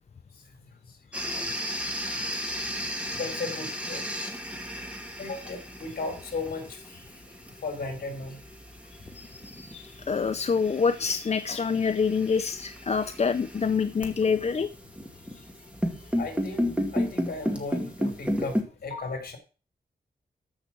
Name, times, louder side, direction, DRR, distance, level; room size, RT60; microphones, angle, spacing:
sound 1, 1.1-18.6, equal, 5° right, 2.3 m, -34 dB
voice 1, 3.1-4.1 5.2-7.1 7.6-8.4 16.2-16.7 16.9-19.4, left 3 dB, 65° left, 5 dB, 4.3 m, -36 dB
voice 2, 9.1-14.7, left 5 dB, 40° left, 8 dB, 0.6 m, -26 dB
14.0 x 5.9 x 6.1 m, 0.35 s
wide cardioid pair, 145°, 17 cm